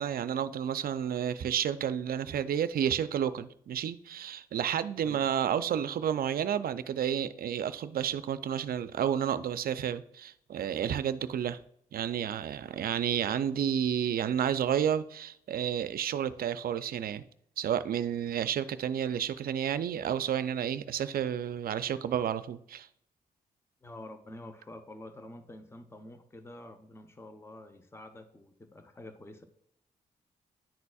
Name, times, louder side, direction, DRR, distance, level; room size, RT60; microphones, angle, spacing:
voice 1, 0.0-11.6 11.9-17.2 17.6-22.9, right 9 dB, 65° right, 0.4 m, -31 dB
voice 2, 23.8-29.4, left 1 dB, 15° left, 0.8 m, -48 dB
10.5 x 4.1 x 2.3 m
supercardioid pair, 50°, 16 cm